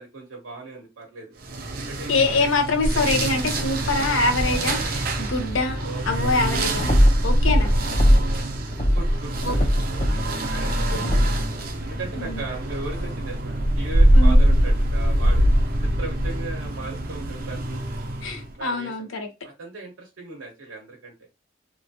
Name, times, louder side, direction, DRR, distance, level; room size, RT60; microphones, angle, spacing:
voice 1, 0.0-1.4 1.8-2.5 5.8-6.4 7.4-7.9 8.9-11.3 11.8-15.4 16.0-18.0 18.6-19.1 19.4-21.1, right 3 dB, 85° right, 0.8 m, -38 dB
sound 1, 1.4-18.5, right 1 dB, 45° right, 0.5 m, -23 dB
voice 2, 2.1-6.9 7.2-7.7 9.4-9.6 10.9-11.2 12.3-12.4 14.1-14.4 18.2-19.3, left 3 dB, 85° left, 0.7 m, -24 dB
sound 2, 6.8-8.4 8.7-11.5, equal, 40° left, 0.6 m, -20 dB
2.9 x 2.3 x 2.7 m
head